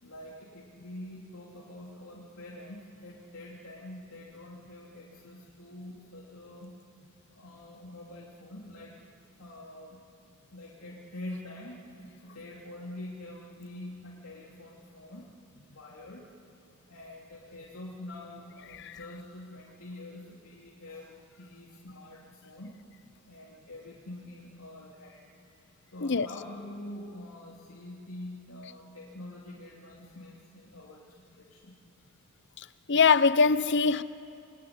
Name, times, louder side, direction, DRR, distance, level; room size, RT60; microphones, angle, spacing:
voice 1, 0.0-6.8 7.3-9.1 9.4-10.0 10.5-15.3 15.7-16.3 16.9-22.8 23.2-25.2 25.9-31.1 31.4-31.8, left 1 dB, 85° left, 3.2 m, -45 dB
voice 2, 32.9-34.0, left 5 dB, 55° left, 0.8 m, -22 dB
28.0 x 21.5 x 9.9 m
head